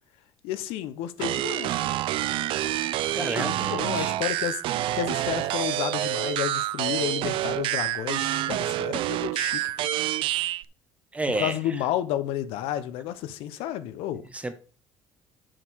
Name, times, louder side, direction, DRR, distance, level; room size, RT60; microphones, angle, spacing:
voice 1, 0.4-2.0 3.2-9.6 11.4-14.2, left 12 dB, 85° left, 0.9 m, -31 dB
sound 1, 1.2-10.6, right 14 dB, 65° right, 0.5 m, -27 dB
voice 2, 3.1-4.2 11.1-11.8 14.3-14.5, right 2 dB, 15° right, 1.1 m, -31 dB
7.6 x 6.6 x 4.7 m
cardioid pair, 130°, 9 cm